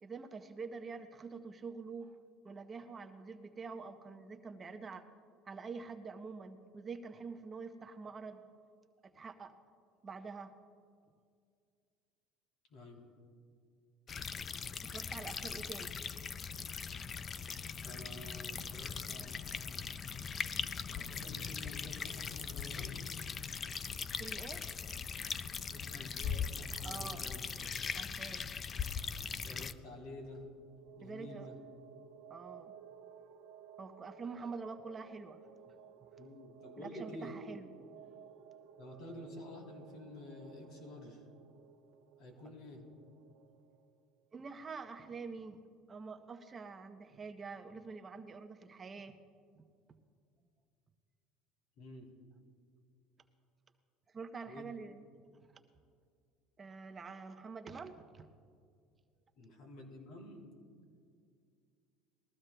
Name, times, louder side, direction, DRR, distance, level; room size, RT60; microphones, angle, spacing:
voice 1, 0.0-2.2 2.4-5.1 5.4-8.4 9.0-9.5 10.0-10.5 14.8-15.9 24.2-24.6 26.8-27.3 27.9-28.5 31.0-31.5 32.3-32.7 33.8-35.4 35.6-35.8 36.8-37.7 44.3-45.6 45.9-49.2 49.5-49.6 54.1-55.1 56.6-58.3, right 4 dB, 25° right, 7 dB, 0.7 m, -46 dB
voice 2, 12.7-13.0 17.8-19.9 20.9-23.0 25.7-27.4 29.4-30.4 31.0-31.6 36.2-37.4 38.8-41.2 42.2-42.8 51.8-52.1 54.5-54.6 59.4-60.5, left 1 dB, 60° left, 1 dB, 3.1 m, -50 dB
sound 1, 14.1-29.7, left 6 dB, 30° left, 0.3 m, -40 dB
sound 2, 29.6-44.0, right 7 dB, 80° right, 0.9 m, -57 dB
20.5 x 14.5 x 2.2 m, 2.2 s
cardioid pair, 125°, 0 cm